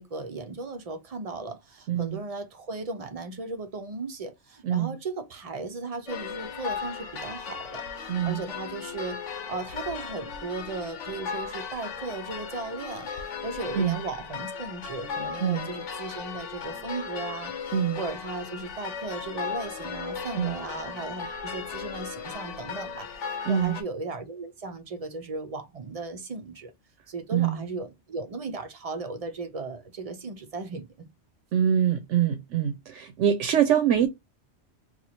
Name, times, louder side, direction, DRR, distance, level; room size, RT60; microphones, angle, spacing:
voice 1, 0.0-9.2 9.5-13.1 13.4-26.7 27.1-31.1, right 3 dB, 45° right, 0.5 m, -36 dB
voice 2, 1.9-2.2 4.6-4.9 8.1-8.4 13.7-14.0 15.4-15.7 17.7-18.0 20.4-20.6 23.5-23.8 27.3-27.6 31.5-34.1, right 9 dB, 85° right, 0.9 m, -24 dB
sound 1, 6.1-23.8, left 6 dB, 80° left, 1.1 m, -36 dB
2.8 x 2.4 x 4.2 m
omnidirectional pair, 1.2 m